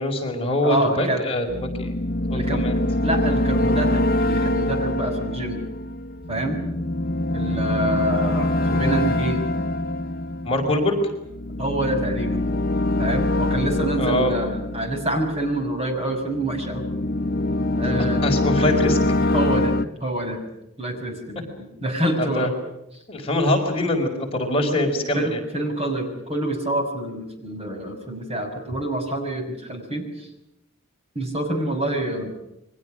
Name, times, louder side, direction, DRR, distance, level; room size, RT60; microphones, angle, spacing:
voice 1, 0.0-2.0 2.3-2.7 10.4-11.0 14.0-14.3 18.0-19.0 22.2-22.5 23.1-25.4, left 1 dB, 25° left, 1 dB, 4.9 m, -23 dB
voice 2, 0.6-1.2 2.3-2.7 3.0-5.6 6.3-6.6 7.3-9.7 11.6-12.4 13.0-16.8 17.8-18.2 19.3-20.4 20.8-22.5 25.1-30.3 31.1-32.3, right 1 dB, 30° right, 4 dB, 6.2 m, -27 dB
sound 1, 1.5-15.8 16.3-19.9, left 1 dB, 45° left, 1.1 m, -24 dB
29.5 x 23.5 x 6.3 m, 0.86 s
head